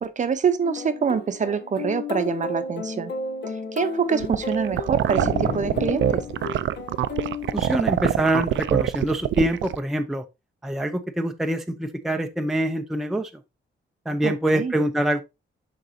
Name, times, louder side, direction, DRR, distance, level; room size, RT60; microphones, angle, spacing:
voice 1, 0.0-3.1 3.7-6.2 14.2-14.7, right 6 dB, 40° right, 0.7 m, -25 dB
sound 1, 0.6-8.1, left 4 dB, 60° left, 1.3 m, -33 dB
sound 2, 4.2-9.8, right 11 dB, 75° right, 0.5 m, -24 dB
sound 3, 5.1-6.6, left 6 dB, 40° left, 0.7 m, -35 dB
voice 2, 7.5-10.2 10.6-13.3 14.1-15.2, right 1 dB, ahead, 0.5 m, -25 dB
11.0 x 3.9 x 2.7 m
wide cardioid pair, 140°, 20 cm